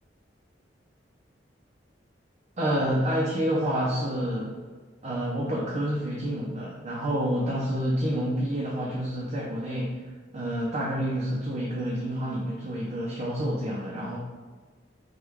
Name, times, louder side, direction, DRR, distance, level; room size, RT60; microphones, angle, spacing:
voice 1, 2.6-4.5 5.0-14.2, equal, 35° right, -5 dB, 0.4 m, -28 dB
3.2 x 2.2 x 3.3 m, 1.4 s
head